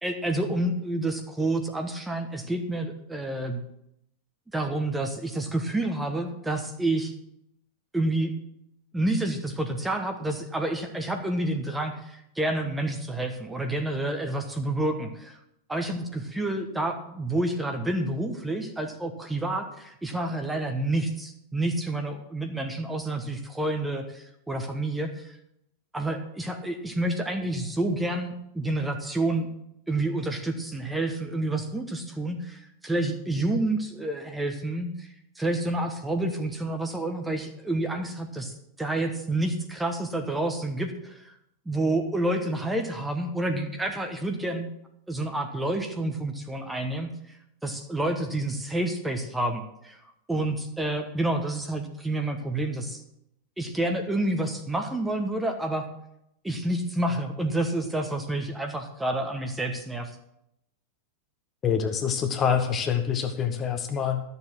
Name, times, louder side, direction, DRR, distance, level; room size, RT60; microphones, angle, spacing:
voice 1, 0.0-3.6 4.5-7.1 7.9-8.3 8.9-15.4 15.7-25.4 25.9-29.5 29.9-35.1 35.4-41.3 41.6-44.7 45.1-47.4 47.6-50.0 50.3-53.0 53.6-55.9 56.4-60.1, right 1 dB, 5° right, 5 dB, 1.2 m, -29 dB
voice 2, 61.6-64.2, left 7 dB, 25° left, 6 dB, 1.2 m, -26 dB
12.5 x 7.1 x 6.0 m, 0.80 s
figure-of-eight pair, 90°, 0 cm